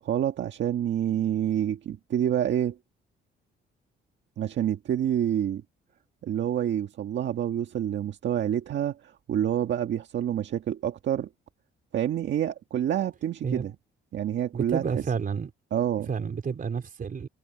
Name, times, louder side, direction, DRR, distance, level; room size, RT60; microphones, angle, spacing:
voice 1, 0.0-2.8 4.4-5.6 6.2-11.3 11.9-13.7 14.1-14.8 15.7-16.1, right 10 dB, 65° right, 1.7 m, -27 dB
voice 2, 14.5-15.5 16.1-17.3, right 6 dB, 45° right, 4.0 m, -30 dB
cardioid pair, 90°, 20 cm